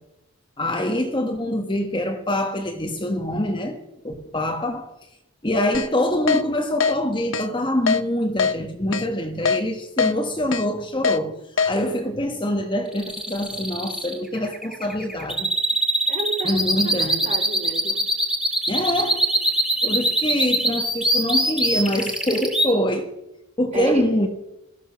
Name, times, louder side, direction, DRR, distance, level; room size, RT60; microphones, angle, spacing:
voice 1, 0.6-3.8 4.0-4.9 5.4-11.4 11.6-15.5 16.4-17.2 18.7-19.3 19.8-23.1 23.6-24.3, left 1 dB, 20° left, 1.3 m, -24 dB
Keyboard (musical), 5.7-5.9 6.3-6.4 6.8-6.9 7.3-7.5 7.9-8.0 8.4-8.5 8.9-9.1 9.5-9.6 10.0-10.1 10.5-10.6 11.0-11.2 11.6-11.7, left 5 dB, 60° left, 0.8 m, -21 dB
Canary Singing, 12.9-22.7, right 1 dB, 5° right, 2.1 m, -22 dB
voice 2, 16.1-18.1 23.7-24.1, right 1 dB, 30° right, 3.3 m, -30 dB
17.0 x 13.5 x 6.1 m
head